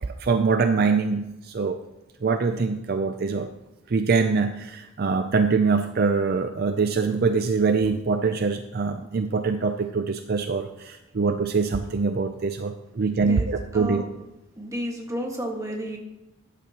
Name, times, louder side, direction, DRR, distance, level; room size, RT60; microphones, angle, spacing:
voice 1, 0.0-1.8 2.2-3.5 3.9-14.1, right 4 dB, 50° right, 8 dB, 0.5 m, -24 dB
voice 2, 13.7-14.2 14.6-16.0, equal, 15° right, 1 dB, 1.7 m, -31 dB
13.5 x 9.9 x 3.0 m, 0.98 s
head